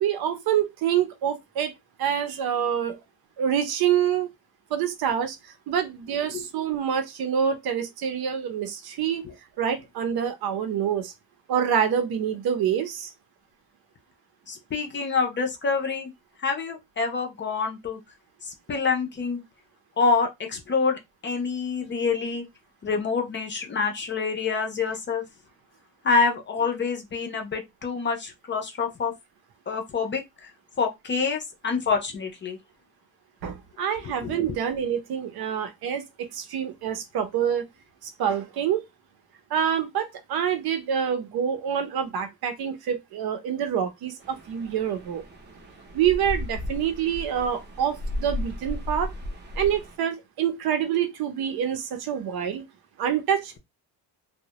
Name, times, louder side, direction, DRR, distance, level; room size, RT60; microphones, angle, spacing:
voice 1, 0.0-1.7 2.0-3.0 3.4-4.3 4.7-9.2 9.6-11.1 11.5-13.1 33.4-37.6 38.0-38.9 39.5-45.2 45.9-49.1 49.6-52.7 53.0-53.6, right 8 dB, 70° right, 0.7 m, -26 dB
voice 2, 14.5-16.1 16.4-18.0 18.4-19.4 20.0-22.4 22.8-25.2 26.0-29.1 29.7-30.2 30.8-32.6 34.2-34.4, left 4 dB, 30° left, 0.4 m, -26 dB
sound 1, 44.2-50.0, left 1 dB, 25° right, 0.6 m, -35 dB
2.2 x 2.0 x 2.8 m
cardioid pair, 130°, 39 cm